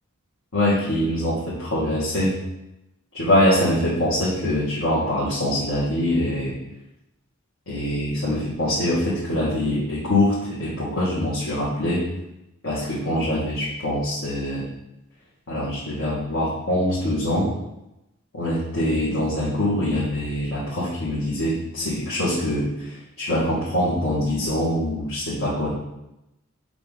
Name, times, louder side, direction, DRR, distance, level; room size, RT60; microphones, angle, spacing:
voice 1, 0.5-2.4 3.1-6.6 7.7-12.0 12.6-14.6 15.5-17.5 18.3-25.7, left 1 dB, 85° left, -10 dB, 1.8 m, -24 dB
7.0 x 3.0 x 5.3 m, 0.92 s
head